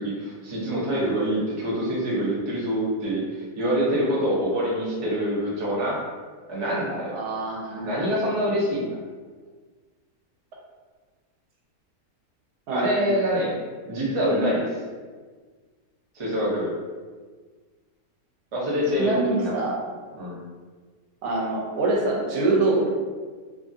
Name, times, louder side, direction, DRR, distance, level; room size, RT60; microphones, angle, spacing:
voice 1, 0.0-6.0 6.5-7.2 7.8-8.9 12.7-13.6 13.8-14.6 16.1-16.7 18.5-19.5 20.1-20.4, equal, 45° right, -5 dB, 0.4 m, -25 dB
voice 2, 7.1-8.1 12.7-13.2 14.3-14.5 19.0-19.8 21.2-22.9, right 2 dB, 85° right, -2 dB, 1.1 m, -25 dB
2.7 x 2.5 x 2.5 m, 1.5 s
omnidirectional pair, 1.6 m